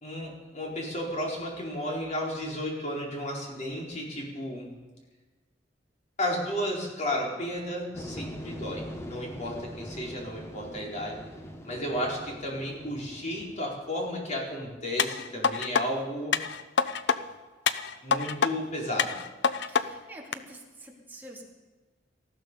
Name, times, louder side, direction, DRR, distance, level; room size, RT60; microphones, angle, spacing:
voice 1, 0.0-4.7 6.2-11.2 11.6-16.3 18.0-19.2, equal, 40° left, -2 dB, 4.5 m, -33 dB
sound 1, 7.9-13.6, equal, 15° left, 1.2 m, -42 dB
sound 2, 15.0-15.8 16.3-17.2 17.7-18.5 19.0-19.8 20.3-20.4, left 6 dB, 65° left, 0.7 m, -26 dB
voice 2, 19.7-21.4, right 1 dB, 10° right, -2 dB, 3.0 m, -47 dB
19.0 x 14.0 x 5.4 m, 1.3 s
head